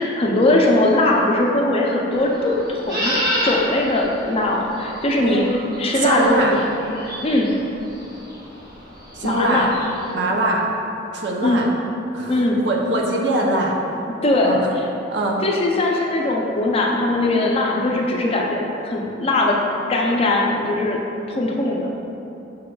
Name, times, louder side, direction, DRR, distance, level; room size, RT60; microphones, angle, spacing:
voice 1, 0.0-3.1 3.4-5.4 5.8-7.5 9.2-9.7 11.4-11.7 12.3-12.6 14.2-14.6 15.4-19.6 19.9-21.0 21.3-21.9, left 2 dB, 30° left, -1 dB, 0.4 m, -20 dB
sound 1, 2.1-10.1, equal, 20° right, 0.9 m, -29 dB
voice 2, 5.2-5.5 6.0-6.5 9.1-9.7 10.1-10.7 11.1-11.7 12.1-12.4 12.6-13.8 14.4-14.7 15.1-15.4, right 2 dB, 65° right, -1 dB, 0.5 m, -22 dB
5.4 x 3.7 x 2.2 m, 2.9 s
head